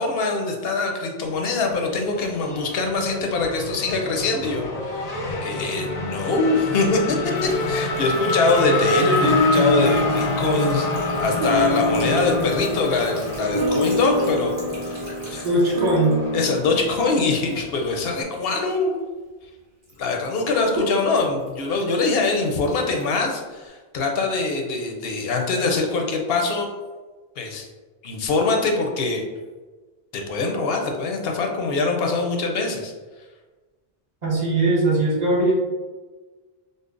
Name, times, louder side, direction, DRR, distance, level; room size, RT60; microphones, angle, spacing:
voice 1, 0.0-5.1 5.4-14.5 14.9-15.0 15.3-15.4 16.3-18.9 20.0-26.7 27.4-27.7 28.0-29.2 30.1-32.9, left 3 dB, 75° left, 2 dB, 0.8 m, -23 dB
Race car auto racing / Accelerating revving vroom, 1.2-18.2, left 2 dB, 45° left, 0.6 m, -28 dB
Sink (filling or washing) / Trickle dribble, 7.3-19.5 19.8-23.7, left 1 dB, 20° right, 1.1 m, -41 dB
sound 1, 9.2-17.9, left 1 dB, 80° right, 0.8 m, -26 dB
voice 2, 15.4-16.2 34.2-35.5, right 2 dB, 45° right, -5 dB, 1.0 m, -20 dB
5.2 x 2.0 x 2.4 m, 1.3 s
omnidirectional pair, 1.0 m